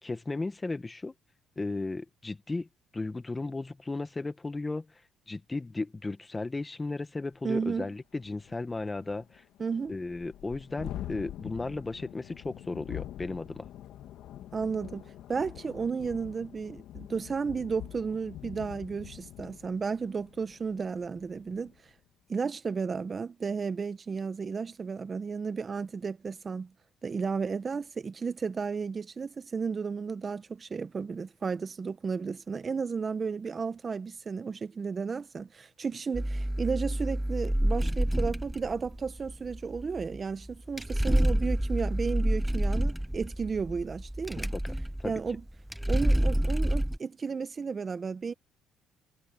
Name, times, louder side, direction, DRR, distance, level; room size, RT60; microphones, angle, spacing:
voice 1, 0.0-1.1 1.6-2.7 2.9-4.9 5.3-9.4 9.9-13.7 45.0-45.1, left 3 dB, 20° left, 1.8 m, -35 dB
Thunderstorm, 7.3-7.4 7.8-7.9 8.2-21.8, left 12 dB, 70° left, 2.2 m, -45 dB
voice 2, 7.4-7.9 9.6-10.0 14.5-21.7 22.3-26.7 27.0-44.5 45.0-45.4 45.9-48.3, right 5 dB, 35° right, 1.1 m, -33 dB
sound 1, 36.1-47.0, right 1 dB, 5° right, 0.4 m, -28 dB
supercardioid pair, 80°, 0 cm